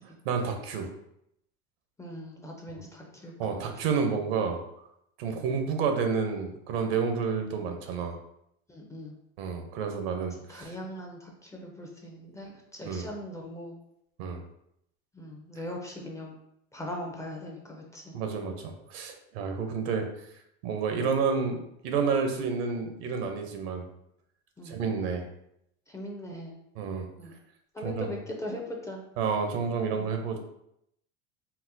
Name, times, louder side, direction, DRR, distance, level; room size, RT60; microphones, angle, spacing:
voice 1, 0.2-0.9 3.4-4.6 5.2-8.2 9.4-10.7 12.8-13.1 14.2-14.4 18.1-20.1 20.6-21.6 21.8-23.8 24.6-25.2 26.8-27.1 27.8-28.1 29.2-30.4, right 5 dB, 75° right, 5 dB, 0.7 m, -29 dB
voice 2, 2.0-3.6 5.3-5.5 8.7-9.2 10.5-13.8 15.1-16.3 16.7-18.2 24.6-24.8 25.9-26.6 27.2-27.4 27.7-29.0 29.9-30.2, left 1 dB, 10° left, 0 dB, 0.4 m, -40 dB
4.0 x 2.1 x 2.6 m, 0.77 s
supercardioid pair, 120°, 31 cm